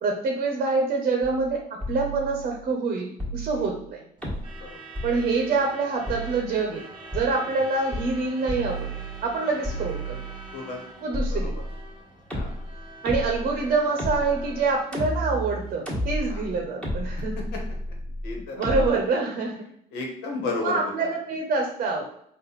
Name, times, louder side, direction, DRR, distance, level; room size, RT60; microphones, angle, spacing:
voice 1, 0.0-1.6 1.9-4.0 5.0-6.8 7.1-8.9 9.2-10.2 11.0-11.6 13.0-17.4 18.6-19.6 20.6-22.1, right 3 dB, 50° right, 2 dB, 0.7 m, -26 dB
sound 1, 1.2-1.5 1.8-2.6 3.2-3.8 4.2-4.6 5.0-5.6 6.1-6.7 7.1-7.3 7.9-8.2 8.5-9.3 9.6-10.5 11.1-11.9 12.3-18.9, equal, 5° left, 1.4 m, -32 dB
Truck / Alarm, 4.2-16.1, right 2 dB, 30° right, 1.1 m, -45 dB
voice 2, 18.2-18.7 19.9-21.1, left 3 dB, 90° left, 1 dB, 1.2 m, -32 dB
4.1 x 2.5 x 4.0 m, 0.70 s
cardioid pair, 110°, 17 cm